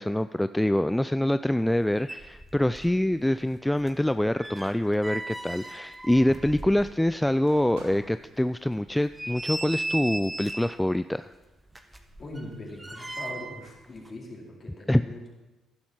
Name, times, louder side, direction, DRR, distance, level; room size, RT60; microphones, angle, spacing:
voice 1, 0.0-11.3 14.9-15.0, left 1 dB, 10° left, 13 dB, 0.3 m, -25 dB
sound 1, 1.7-1.8 2.0-3.0 3.3-7.2 7.6-7.7 8.2-8.3 8.9-10.8 11.7-13.7 14.0-14.1, right 2 dB, 15° right, 1.5 m, -37 dB
sound 2, 6.4-8.3 10.0-10.5, right 3 dB, 80° right, 1.8 m, -51 dB
voice 2, 12.2-15.3, left 1 dB, 40° left, -2 dB, 4.4 m, -41 dB
15.0 x 11.5 x 4.5 m, 1.1 s
hypercardioid pair, 45°, 0 cm